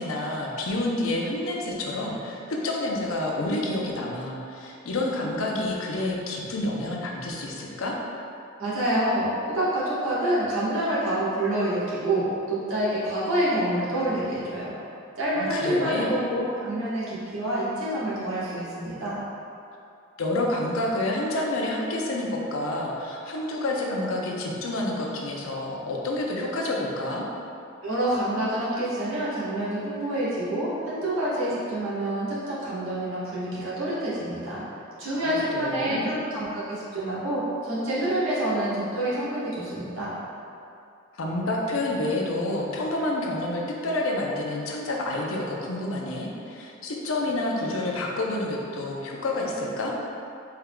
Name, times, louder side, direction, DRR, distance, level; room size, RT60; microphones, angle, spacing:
voice 1, 0.0-8.0 15.3-16.1 20.2-27.3 35.1-36.1 41.1-50.0, left 1 dB, 85° left, -1 dB, 0.6 m, -29 dB
voice 2, 8.6-14.7 15.2-19.2 27.8-34.6 35.0-40.1, right 1 dB, 80° right, -9 dB, 1.3 m, -27 dB
4.5 x 3.6 x 2.2 m, 2.6 s
head